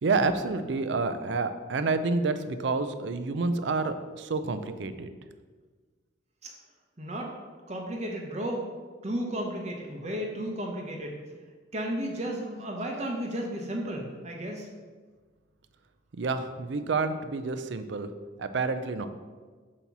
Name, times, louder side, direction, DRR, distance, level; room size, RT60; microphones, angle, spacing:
voice 1, 0.0-5.1 16.1-18.1 18.4-19.1, right 3 dB, 65° right, 10 dB, 0.4 m, -29 dB
voice 2, 7.0-7.3 7.7-8.6 9.0-11.1 11.7-14.7, right 1 dB, 35° right, 0 dB, 0.7 m, -33 dB
6.9 x 2.9 x 5.9 m, 1.4 s
head